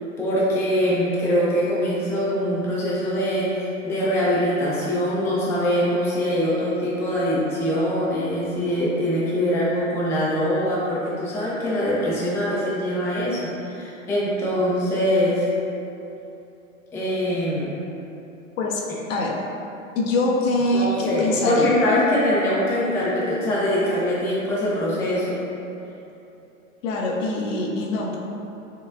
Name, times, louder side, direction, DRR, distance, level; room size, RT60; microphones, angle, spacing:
voice 1, 0.2-15.5 16.9-17.7 20.7-25.4, equal, 5° left, -7 dB, 0.3 m, -23 dB
voice 2, 20.0-21.7 26.8-28.2, left 2 dB, 70° left, -1 dB, 0.7 m, -23 dB
4.4 x 2.3 x 2.4 m, 2.9 s
hypercardioid pair, 100°, 40 cm